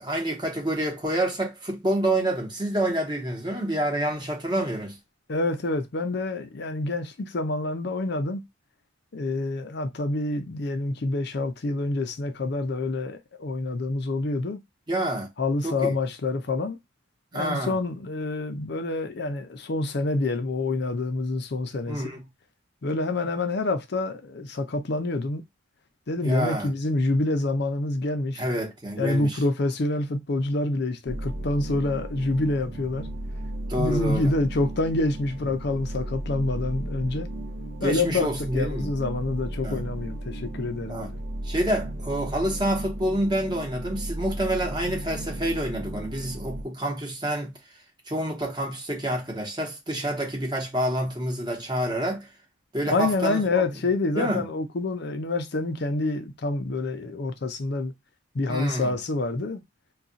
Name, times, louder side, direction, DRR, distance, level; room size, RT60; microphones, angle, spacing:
voice 1, 0.0-5.0 14.9-15.3 15.6-15.9 17.3-17.7 21.9-22.2 26.2-26.7 28.4-29.4 33.7-34.3 37.8-38.9 39.6-39.8 40.9-41.1 41.4-47.5 48.1-52.3 52.7-53.6 54.1-54.4 58.5-58.9, right 1 dB, 20° right, 1.0 m, -28 dB
voice 2, 5.3-8.4 9.1-14.6 15.4-16.8 17.3-22.1 22.8-25.4 26.1-28.4 29.0-33.1 33.8-37.3 37.8-41.2 52.9-57.9 58.3-59.6, left 2 dB, 55° left, 0.5 m, -27 dB
sound 1, 31.1-46.6, right 1 dB, 50° right, 0.5 m, -35 dB
2.4 x 2.3 x 3.8 m
head